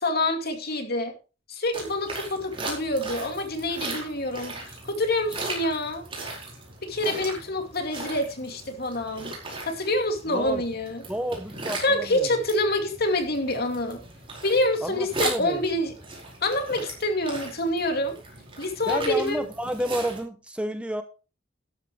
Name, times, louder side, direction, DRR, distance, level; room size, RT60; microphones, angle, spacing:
voice 1, 0.0-1.1 1.5-4.5 4.8-6.0 6.8-9.3 9.7-11.0 11.8-14.0 14.4-15.9 16.4-18.2 18.6-19.4, left 1 dB, 50° left, 5 dB, 2.5 m, -26 dB
sound 1, 1.7-20.2, right 2 dB, 30° right, 4.9 m, -38 dB
voice 2, 10.3-10.6 11.1-12.4 14.8-15.6 18.9-21.0, right 1 dB, 5° right, 9 dB, 0.8 m, -31 dB
12.5 x 12.0 x 3.2 m, 0.33 s
head